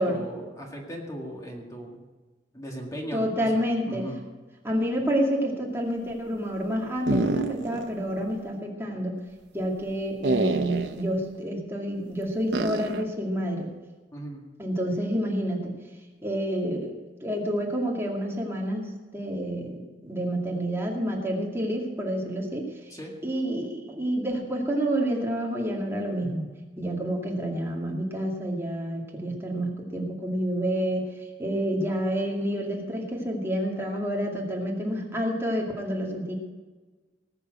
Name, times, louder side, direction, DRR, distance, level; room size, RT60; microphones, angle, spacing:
voice 1, 0.0-2.0 2.5-3.5 3.9-4.2 14.1-14.4 22.9-23.1, equal, 20° left, 0 dB, 1.9 m, -37 dB
voice 2, 3.1-4.1 4.6-9.1 9.5-13.7 14.6-15.8 16.2-22.9 23.2-26.5 26.8-31.1 31.4-36.3, equal, 15° right, -1 dB, 2.3 m, -29 dB
sound 1, 7.1-7.9 8.2-8.3 10.2-11.0 12.5-13.0, right 2 dB, 75° right, 0.9 m, -27 dB
19.5 x 7.0 x 7.8 m, 1.3 s
head